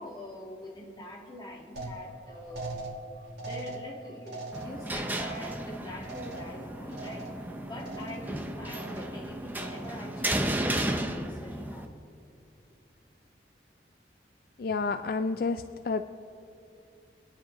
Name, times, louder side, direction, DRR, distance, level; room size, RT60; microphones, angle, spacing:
voice 1, 0.0-2.8 3.4-7.3 7.6-11.9, left 1 dB, 25° left, -1 dB, 1.6 m, -44 dB
sound 1, 1.8-7.5 7.8-8.4 8.7-9.2 9.6-10.1 10.4-11.0, right 2 dB, 75° right, 2.3 m, -42 dB
sound 2, 4.5-11.8, right 1 dB, 10° right, 0.6 m, -34 dB
voice 2, 14.6-16.0, left 4 dB, 55° left, 9 dB, 0.3 m, -30 dB
25.0 x 9.8 x 3.0 m, 2.6 s
head